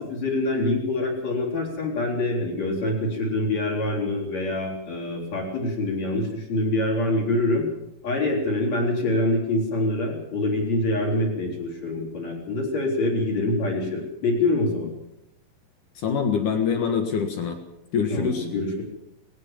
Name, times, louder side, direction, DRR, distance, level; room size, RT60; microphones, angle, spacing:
voice 1, 0.0-7.7 8.0-14.9 18.1-18.8, left 2 dB, 35° left, -1 dB, 4.7 m, -25 dB
voice 2, 16.0-17.6 17.9-18.5, left 6 dB, 65° left, 6 dB, 2.1 m, -24 dB
20.5 x 18.0 x 7.4 m, 0.86 s
omnidirectional pair, 6.0 m